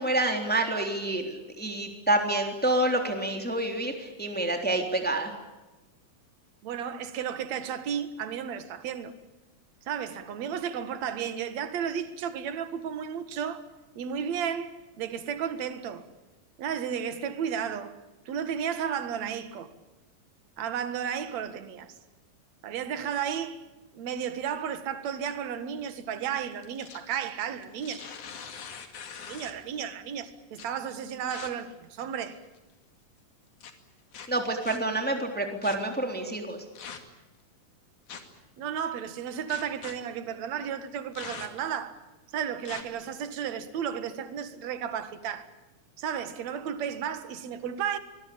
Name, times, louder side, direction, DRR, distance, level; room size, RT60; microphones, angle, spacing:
voice 1, 0.0-5.3 34.3-36.6, right 1 dB, 5° left, 3.2 m, -28 dB
voice 2, 6.6-9.1 9.9-13.7 14.0-16.0 16.6-18.0 18.3-19.7 20.6-22.0 22.6-23.6 23.9-28.1 29.3-32.4 38.6-42.0 42.3-45.5 46.0-48.0, right 8 dB, 65° right, 2.8 m, -33 dB
sound 1, 26.5-27.1 27.6-29.7 30.5-30.7 31.3-31.5 32.2-32.6 33.6-33.7 34.1-34.8 35.6-35.8 36.7-37.2 38.1-38.4 39.5-39.9 41.1-41.7 42.6-42.8, left 7 dB, 75° left, 3.8 m, -42 dB
26.0 x 21.0 x 8.7 m
omnidirectional pair, 3.6 m